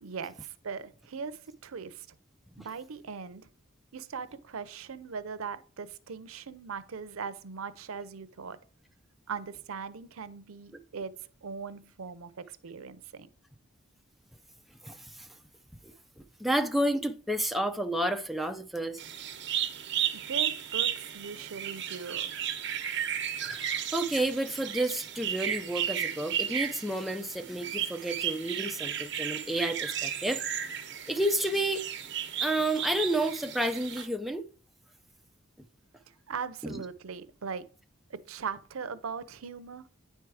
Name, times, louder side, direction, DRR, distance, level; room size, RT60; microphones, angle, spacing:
voice 1, 0.0-2.1 2.6-3.5 3.9-8.6 9.3-11.1 11.4-13.3 20.1-22.3 36.1-37.7 38.1-39.9, right 5 dB, 85° right, 0.6 m, -40 dB
voice 2, 14.8-15.3 16.4-19.0 22.8-22.9 23.4-30.4 31.1-31.9 32.4-34.4 36.6-36.8, right 1 dB, ahead, 0.5 m, -30 dB
sound 1, 19.0-34.1, right 9 dB, 55° right, 1.0 m, -34 dB
9.3 x 4.6 x 4.8 m
head